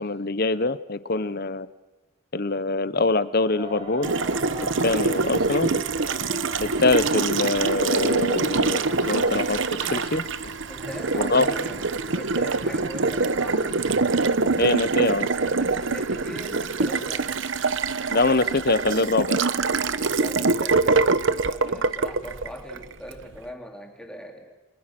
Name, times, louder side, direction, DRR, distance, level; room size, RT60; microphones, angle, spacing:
voice 1, 0.0-1.7 2.3-4.1 4.8-5.7 6.6-10.2 11.2-11.4 14.6-15.3 18.1-19.4, left 3 dB, 45° left, 15 dB, 0.9 m, -24 dB
sound 1, 3.6-15.2, equal, 25° right, 4.1 m, -44 dB
Water tap faucet, 4.0-23.2, right 3 dB, 65° right, 1.0 m, -24 dB
Fireworks, 8.0-13.6, left 2 dB, 75° left, 5.0 m, -48 dB
voice 2, 10.7-11.8 12.1-13.8 15.6-17.3 20.1-24.6, equal, 5° left, 2 dB, 3.0 m, -40 dB
29.5 x 25.0 x 6.1 m, 1.2 s
head